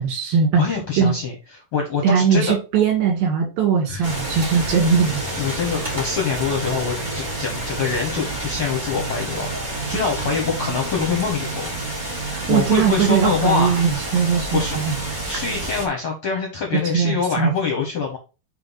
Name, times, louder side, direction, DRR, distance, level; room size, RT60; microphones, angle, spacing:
voice 1, 0.0-1.1 2.0-5.2 12.5-14.9 16.9-17.5, right 6 dB, 80° right, 2 dB, 3.7 m, -20 dB
voice 2, 0.5-1.3 1.7-2.5 3.9-4.1 5.4-11.7 12.5-13.9 14.5-14.8 15.2-18.2, left 5 dB, 60° left, 1 dB, 1.4 m, -25 dB
sound 1, 4.0-15.9, right 2 dB, 55° right, 0.5 m, -29 dB
6.8 x 3.6 x 4.0 m, 0.31 s
omnidirectional pair, 4.1 m